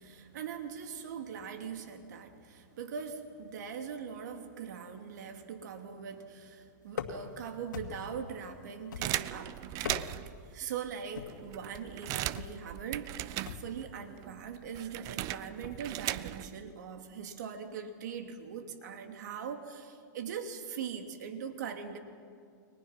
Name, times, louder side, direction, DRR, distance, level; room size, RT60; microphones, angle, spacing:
voice 1, 0.0-9.6 10.5-22.0, right 7 dB, 65° right, 5 dB, 2.9 m, -41 dB
sound 1, 6.9-7.4 7.7-8.2 8.9-9.4 9.7-10.4 11.1-11.5 12.4-12.6 13.5-13.8, left 7 dB, 80° left, 2.4 m, -40 dB
sound 2, 9.0-10.4 11.0-11.1 11.3-14.0 14.2-16.6, right 16 dB, 35° right, 0.7 m, -37 dB
30.0 x 23.0 x 6.0 m, 2.3 s
hypercardioid pair, 135°, 10 cm